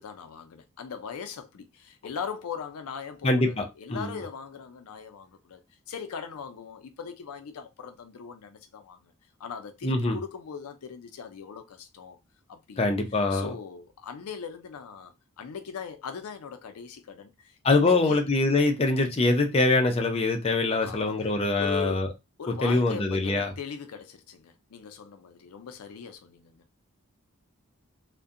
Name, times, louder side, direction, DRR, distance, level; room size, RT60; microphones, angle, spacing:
voice 1, 0.0-5.6 5.9-9.1 9.4-12.2 12.5-12.9 13.3-18.2 20.8-22.0 22.4-26.6, left 6 dB, 85° left, 0.4 m, -40 dB
voice 2, 3.2-3.6 3.9-4.2 9.8-10.2 12.8-13.5 17.6-22.1 22.6-23.5, left 2 dB, 25° left, 0.4 m, -24 dB
2.6 x 2.1 x 2.4 m
head